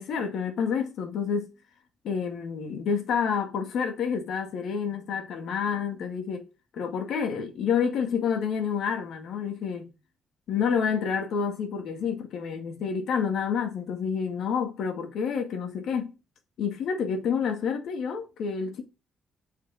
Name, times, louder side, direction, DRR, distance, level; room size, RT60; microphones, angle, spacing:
voice 1, 0.0-1.5 2.0-6.4 6.7-9.9 10.5-16.1 16.6-18.8, left 6 dB, 75° left, 2.2 m, -28 dB
7.8 x 6.7 x 5.0 m
cardioid pair, 90°, 0 cm